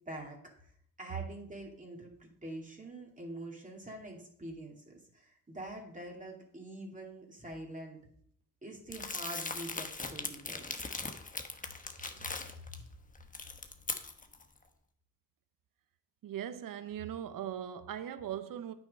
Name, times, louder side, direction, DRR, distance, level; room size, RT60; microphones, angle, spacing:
voice 1, 0.1-0.4 0.6-0.7 1.0-8.0 8.6-10.7, right 1 dB, 20° right, 2.4 m, -45 dB
Crumpling crinkling, 8.9-12.7 13.2-14.4, left 3 dB, 25° left, 1.1 m, -40 dB
voice 2, 16.2-18.7, right 10 dB, 70° right, 0.9 m, -39 dB
8.9 x 6.1 x 5.3 m
cardioid pair, 75°, 35 cm